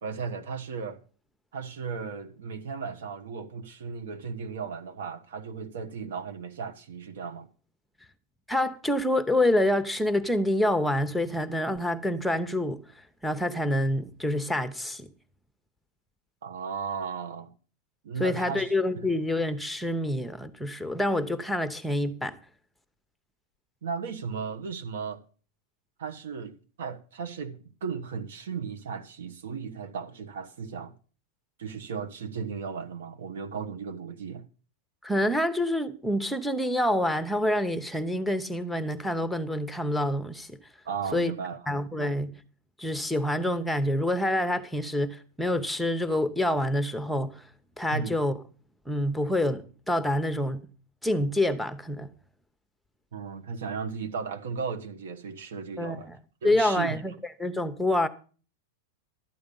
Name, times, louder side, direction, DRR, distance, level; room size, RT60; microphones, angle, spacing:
voice 1, 0.0-1.0 1.5-7.5 16.4-17.5 18.0-19.1 23.8-25.2 26.0-30.9 31.6-34.5 40.8-41.6 41.9-42.2 47.9-48.2 53.1-56.1 56.4-57.0, right 6 dB, 80° right, 1.3 m, -36 dB
voice 2, 8.5-12.8 13.2-15.1 18.2-22.4 35.0-40.6 41.1-41.3 41.7-42.3 42.8-47.4 47.8-48.3 48.9-50.6 51.0-52.1 55.8-56.2 56.4-57.1 57.4-58.1, left 1 dB, ahead, 0.9 m, -27 dB
12.5 x 8.5 x 5.4 m
supercardioid pair, 140°, 0 cm